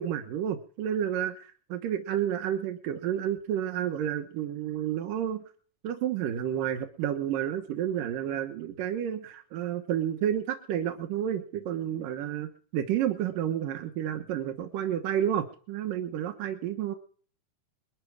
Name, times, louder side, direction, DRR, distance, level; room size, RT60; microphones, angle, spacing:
voice 1, 0.0-5.4 5.8-17.0, right 10 dB, 85° right, 6 dB, 2.9 m, -30 dB
22.0 x 12.0 x 4.8 m, 0.43 s
omnidirectional pair, 3.8 m